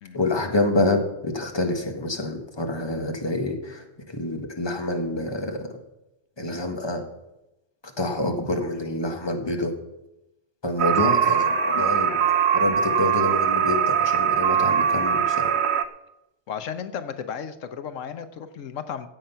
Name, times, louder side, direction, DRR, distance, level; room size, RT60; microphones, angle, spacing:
voice 1, 0.1-5.8 6.4-7.0 7.8-9.7 10.6-12.2 12.5-15.6, left 2 dB, 20° left, 4 dB, 1.5 m, -27 dB
sound 1, 10.8-15.8, right 8 dB, 60° right, 1.0 m, -21 dB
voice 2, 16.5-19.1, left 7 dB, 85° left, 10 dB, 1.2 m, -34 dB
15.5 x 7.8 x 5.6 m, 0.93 s
omnidirectional pair, 1.3 m